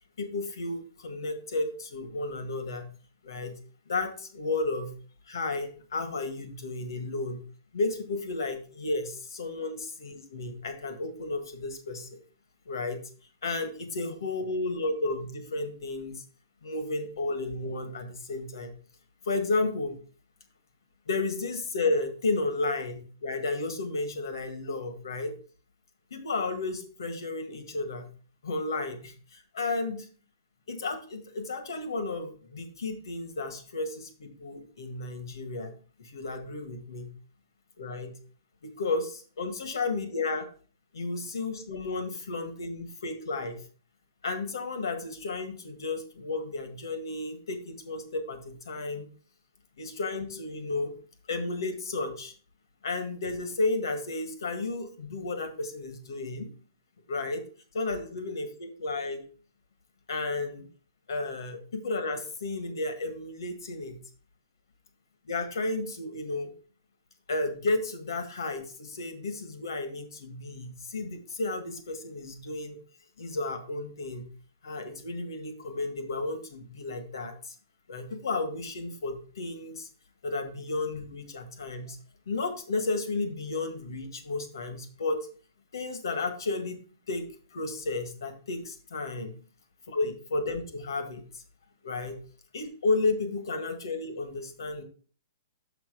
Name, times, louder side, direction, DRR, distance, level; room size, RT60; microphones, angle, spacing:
voice 1, 0.2-2.9 3.2-3.6 3.9-4.9 5.3-7.4 7.7-12.1 12.7-13.0 13.4-16.2 16.6-18.7 19.2-19.9 21.1-25.3 26.1-28.1 28.4-30.1 30.7-35.7 36.0-37.1 37.8-38.2 38.6-40.5 40.9-43.6 44.2-49.1 49.8-50.9 51.3-52.3 52.8-56.5 57.1-57.4 57.7-59.2 60.1-60.7 61.1-64.0 65.3-66.5 67.3-72.8 73.2-74.3 74.6-77.5 77.9-79.9 80.2-82.0 82.3-85.2 85.7-86.8 87.1-89.3 89.9-91.4 91.8-92.2 92.5-94.8, left 3 dB, 80° left, 8 dB, 1.5 m, -32 dB
6.0 x 5.0 x 4.8 m, 0.40 s
hypercardioid pair, 180°, 2 cm